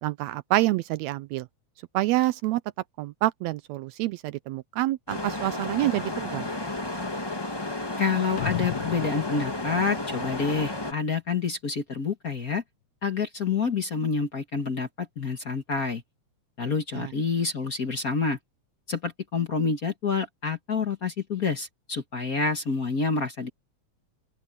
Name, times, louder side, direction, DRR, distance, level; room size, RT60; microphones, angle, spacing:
voice 1, 0.0-1.5 1.9-2.6 3.0-6.5 17.0-17.1, right 16 dB, 80° right, 1.7 m, -27 dB
sound 1, 5.1-10.9, left 2 dB, 20° left, 0.7 m, -32 dB
voice 2, 8.0-12.6 13.0-16.0 16.6-18.4 18.9-23.5, left 5 dB, 40° left, 1.5 m, -28 dB
sound 2, 8.4-10.9, left 14 dB, 85° left, 1.0 m, -36 dB
open air
omnidirectional pair, 3.3 m